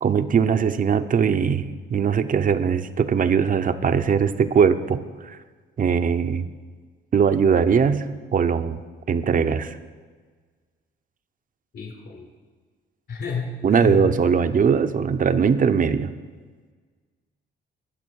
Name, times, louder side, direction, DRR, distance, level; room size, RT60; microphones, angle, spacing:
voice 1, 0.0-5.4 5.8-6.5 7.1-8.1 8.3-8.8 9.1-9.8 13.6-16.1, right 6 dB, 45° right, 10 dB, 0.8 m, -20 dB
voice 2, 11.7-12.3 13.1-14.1, left 4 dB, 60° left, 0 dB, 4.1 m, -30 dB
22.0 x 7.5 x 4.7 m, 1.5 s
cardioid pair, 90°, 20 cm